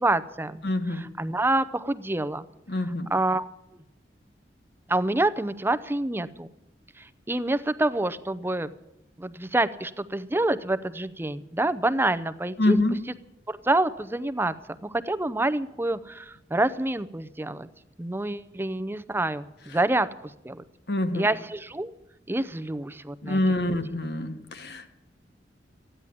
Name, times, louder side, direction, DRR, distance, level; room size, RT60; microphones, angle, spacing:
voice 1, 0.0-2.5 2.8-3.5 4.9-6.5 7.0-8.7 9.2-12.8 13.5-17.7 18.0-20.1 20.4-20.6 21.1-21.9 22.3-23.4 23.7-23.8, right 2 dB, 15° right, 14 dB, 0.6 m, -27 dB
voice 2, 0.6-1.1 2.7-3.1 12.6-13.0 20.9-21.3 23.2-24.9, left 1 dB, 70° left, 8 dB, 1.5 m, -26 dB
15.0 x 10.0 x 8.4 m, 0.91 s
head